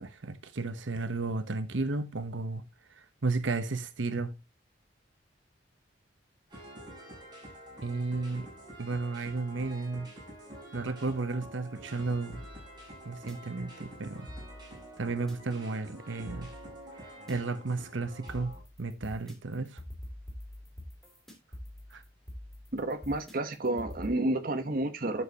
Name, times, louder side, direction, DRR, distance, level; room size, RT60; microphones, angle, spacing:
voice 1, 0.0-2.6 2.9-4.3 7.8-8.5 8.8-10.1 10.7-12.4 13.0-14.3 15.0-16.5 17.0-19.8 21.9-22.0, right 3 dB, 80° right, 0.9 m, -33 dB
sound 1, 6.5-18.6, right 1 dB, 25° right, 6.6 m, -48 dB
sound 2, 12.3-13.3 14.3-15.3 16.3-17.3 18.3-24.1, left 1 dB, ahead, 3.0 m, -45 dB
voice 2, 22.7-25.2, right 2 dB, 50° right, 1.1 m, -30 dB
11.5 x 7.5 x 2.9 m
head